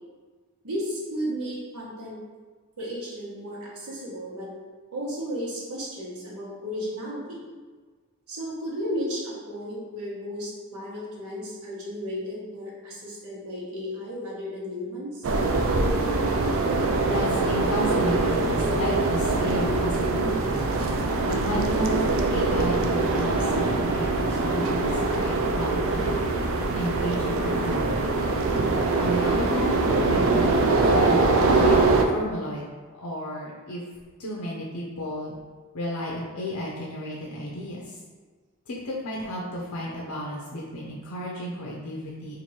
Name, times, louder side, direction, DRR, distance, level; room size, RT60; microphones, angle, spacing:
voice 1, 0.6-2.2 2.8-4.5 4.9-7.4 8.3-15.3, equal, 85° right, -6 dB, 1.2 m, -34 dB
sound 1, 15.2-32.0, right 3 dB, 60° right, 0.4 m, -23 dB
voice 2, 17.0-20.6 21.2-26.2 26.7-28.4 29.0-30.5 30.8-32.6 33.0-33.8 34.2-35.3 35.7-37.8 38.7-42.4, equal, 80° left, -4 dB, 0.6 m, -32 dB
2.9 x 2.6 x 4.3 m, 1.4 s
head